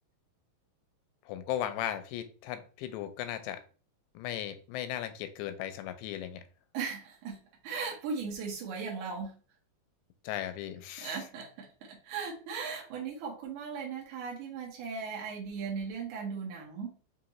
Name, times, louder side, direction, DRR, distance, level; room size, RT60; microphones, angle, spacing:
voice 1, 1.3-3.6 4.2-6.4 10.2-11.2, left 11 dB, 85° left, 2.7 m, -37 dB
voice 2, 6.7-9.3 11.0-17.0, right 5 dB, 80° right, 1.8 m, -38 dB
6.5 x 2.5 x 3.0 m
omnidirectional pair, 4.9 m